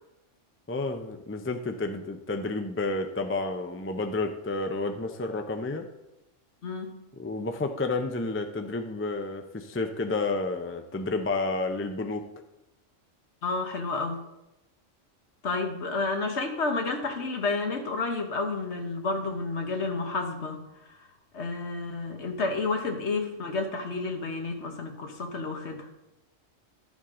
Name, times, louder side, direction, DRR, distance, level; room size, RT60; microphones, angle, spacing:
voice 1, 0.7-5.9 7.1-12.3, left 3 dB, 15° left, 5 dB, 0.4 m, -30 dB
voice 2, 13.4-14.2 15.4-20.6 20.8-21.0 21.3-25.9, left 3 dB, 60° left, 4 dB, 1.4 m, -30 dB
12.5 x 7.2 x 3.8 m, 0.92 s
omnidirectional pair, 1.3 m